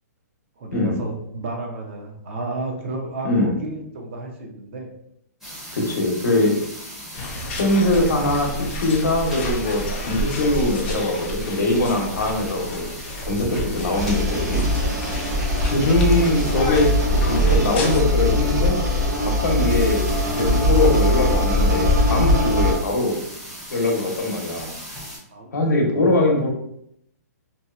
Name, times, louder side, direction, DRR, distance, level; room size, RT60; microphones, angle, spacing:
voice 1, 0.6-4.9 25.3-25.5 26.0-26.1, right 2 dB, 45° right, 1 dB, 0.5 m, -32 dB
sound 1, 5.4-25.2, equal, 5° right, 0.6 m, -38 dB
voice 2, 5.7-6.6 7.6-12.8 13.3-14.7 15.7-16.9 17.2-18.8 19.2-23.2 23.7-24.7 25.5-26.5, left 2 dB, 85° left, 1 dB, 0.8 m, -22 dB
sound 2, 7.1-18.0, left 1 dB, 40° left, 0.5 m, -31 dB
sound 3, 13.9-22.8, equal, 80° right, 0.7 m, -21 dB
2.7 x 2.1 x 2.4 m, 0.73 s
hypercardioid pair, 160°, 9 cm